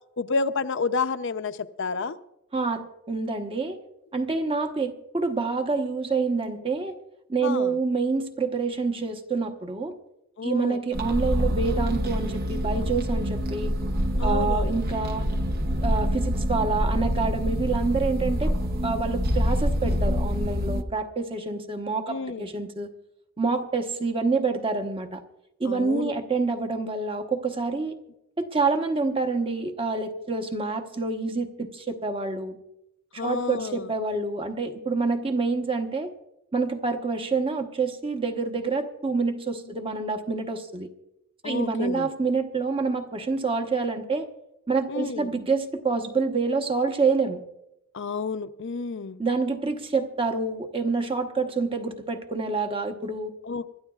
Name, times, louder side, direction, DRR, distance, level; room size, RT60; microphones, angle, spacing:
voice 1, 0.2-2.2 7.4-7.8 10.4-10.8 14.2-14.8 22.1-22.5 25.7-26.1 33.2-33.9 41.4-42.1 44.9-45.3 47.9-49.2 53.4-53.7, left 4 dB, 55° left, 11 dB, 0.6 m, -30 dB
voice 2, 2.5-3.8 4.1-7.0 7.3-9.9 10.4-13.7 14.2-15.3 15.8-18.5 18.8-22.9 23.4-25.2 25.6-28.0 28.4-32.6 33.1-36.1 36.5-40.9 41.4-44.3 44.7-47.4 49.2-53.3, right 4 dB, 25° right, 6 dB, 1.0 m, -27 dB
sound 1, 10.9-20.8, equal, 45° right, 0.8 m, -26 dB
26.0 x 12.5 x 2.4 m, 0.87 s
head